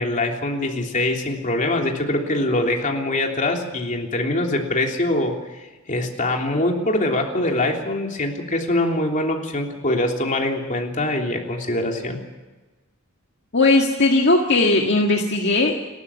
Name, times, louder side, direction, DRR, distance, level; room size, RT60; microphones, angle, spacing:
voice 1, 0.0-12.2, left 1 dB, 35° left, 2 dB, 3.3 m, -23 dB
voice 2, 13.5-15.8, left 2 dB, 55° left, 1 dB, 1.8 m, -18 dB
29.0 x 13.5 x 7.3 m, 1.2 s
head